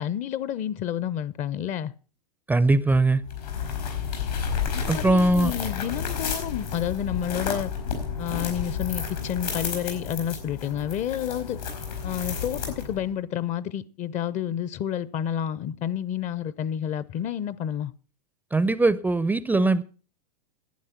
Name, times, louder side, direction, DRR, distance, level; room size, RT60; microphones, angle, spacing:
voice 1, 0.0-1.9 4.7-7.7 8.2-11.6 12.0-17.9, left 10 dB, 35° left, 0.6 m, -30 dB
voice 2, 2.5-3.2 4.9-5.5 18.5-19.8, right 2 dB, 10° right, 0.4 m, -21 dB
sound 1, 3.2-13.1, left 6 dB, 85° left, 4.9 m, -31 dB
11.5 x 8.9 x 5.8 m
hypercardioid pair, 100°, 20 cm